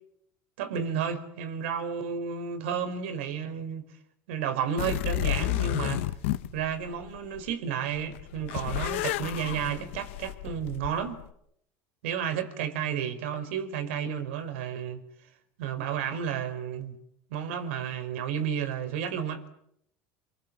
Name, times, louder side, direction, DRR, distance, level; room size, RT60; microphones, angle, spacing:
voice 1, 0.6-3.8 4.3-6.0 6.5-11.2 12.0-15.0 15.6-17.0 17.3-19.4, right 8 dB, 85° right, 4.5 m, -32 dB
sound 1, 4.8-7.5 8.0-11.3, left 14 dB, 85° left, 1.4 m, -31 dB
28.5 x 23.0 x 7.5 m
supercardioid pair, 110°, 6 cm